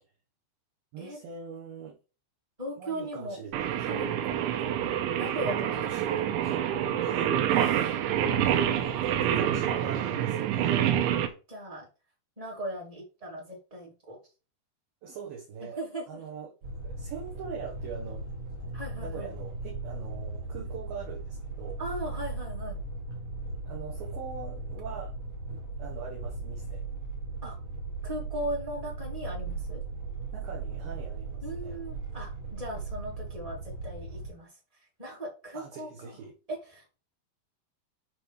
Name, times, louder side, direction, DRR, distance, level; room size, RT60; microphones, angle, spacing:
voice 1, 0.9-2.0 2.8-3.9 5.8-6.6 7.0-8.0 8.4-11.0 15.0-16.6 16.8-18.2 18.6-21.8 23.7-25.1 25.5-26.9 30.3-31.8 35.5-36.3, right 6 dB, 65° right, 2.5 m, -43 dB
voice 2, 2.6-3.4 3.9-4.7 5.1-5.8 6.1-6.3 11.5-11.9 12.4-14.2 15.6-16.2 18.7-19.3 21.8-22.8 27.4-27.6 28.0-29.8 31.4-34.5 35.0-35.9 36.5-37.0, right 1 dB, 15° right, 1.5 m, -38 dB
Singing, 3.5-11.3, right 10 dB, 90° right, 3.4 m, -27 dB
sound 1, 16.6-34.3, right 3 dB, 45° right, 4.4 m, -37 dB
12.0 x 4.1 x 3.3 m
omnidirectional pair, 5.2 m